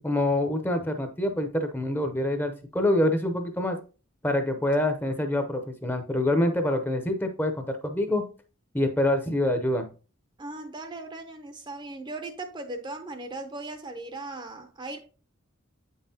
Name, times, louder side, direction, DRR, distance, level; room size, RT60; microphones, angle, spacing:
voice 1, 0.0-3.8 4.2-8.2 8.7-9.9, left 1 dB, 10° left, 0.7 m, -26 dB
voice 2, 10.4-15.0, right 2 dB, 25° right, 0.6 m, -38 dB
8.0 x 5.5 x 2.8 m
head